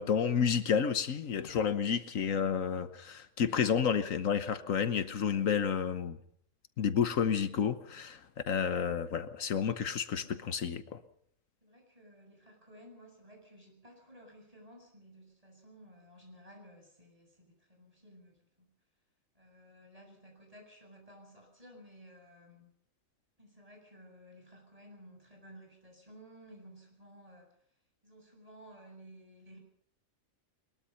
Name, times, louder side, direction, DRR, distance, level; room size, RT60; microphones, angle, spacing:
voice 1, 0.0-6.2 6.8-8.2 8.5-11.0, left 7 dB, 75° left, 1.4 m, -30 dB
voice 2, 11.6-18.7 19.3-22.7 23.4-27.6 28.0-29.6, equal, 25° right, 7.8 m, -55 dB
22.0 x 21.5 x 5.7 m
omnidirectional pair, 1.4 m